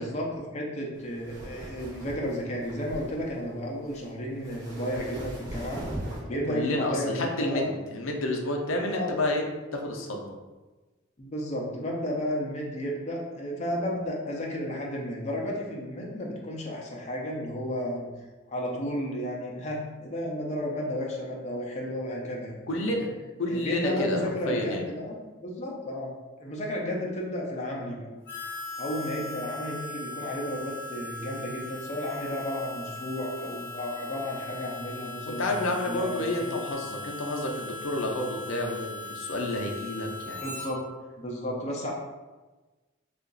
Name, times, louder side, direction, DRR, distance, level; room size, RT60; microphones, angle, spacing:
voice 1, 0.0-5.8 6.3-7.7 8.9-9.2 11.2-18.1 18.5-22.5 23.5-25.1 25.4-26.1 26.4-28.1 28.8-36.6 40.4-40.8 41.2-41.9, equal, 35° left, -2 dB, 0.6 m, -33 dB
sound 1, 1.0-6.2, right 1 dB, 15° right, 1.3 m, -40 dB
voice 2, 6.2-9.5 9.7-10.3 22.7-23.1 23.4-24.2 24.4-24.8 35.2-40.6, left 1 dB, 75° left, 1 dB, 0.6 m, -30 dB
Harmonica, 28.2-40.7, left 3 dB, 10° left, 1.2 m, -39 dB
2.8 x 2.5 x 3.8 m, 1.2 s
head